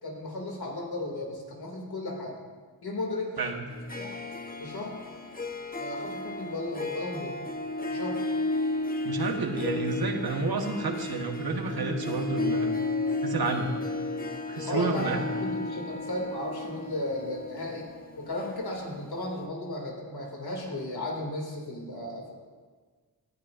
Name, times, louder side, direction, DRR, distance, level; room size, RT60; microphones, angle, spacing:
voice 1, 0.0-2.4 2.8-3.3 4.0-4.2 4.6-5.0 5.8-7.4 7.9-8.3 14.6-17.9 18.2-22.3, left 1 dB, 85° left, -1 dB, 2.5 m, -35 dB
Harp, 3.7-19.1, left 2 dB, 25° left, 0.9 m, -33 dB
voice 2, 9.0-12.7 13.2-13.7 14.5-15.2, right 3 dB, 75° right, 3 dB, 1.3 m, -30 dB
18.0 x 12.0 x 2.5 m, 1.5 s
wide cardioid pair, 100°, 37 cm